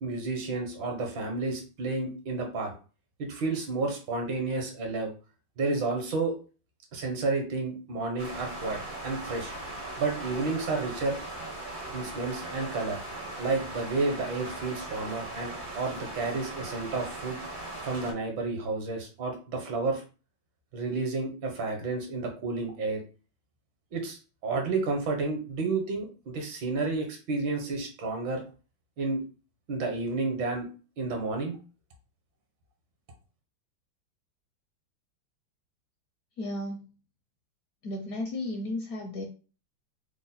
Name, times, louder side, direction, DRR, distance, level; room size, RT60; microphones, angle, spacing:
voice 1, 0.0-2.7 3.2-5.1 5.6-6.3 6.9-9.5 10.0-11.2 11.9-13.0 13.4-17.4 17.8-20.0 20.7-23.0 23.9-28.4 29.0-29.2 29.7-30.7 31.0-31.6, right 3 dB, 75° right, 3 dB, 1.7 m, -31 dB
sound 1, 8.2-18.1, right 2 dB, 50° right, 0.6 m, -39 dB
voice 2, 36.4-36.9 37.8-39.2, left 1 dB, 70° left, 2 dB, 0.9 m, -34 dB
3.9 x 2.1 x 4.0 m, 0.36 s
omnidirectional pair, 2.1 m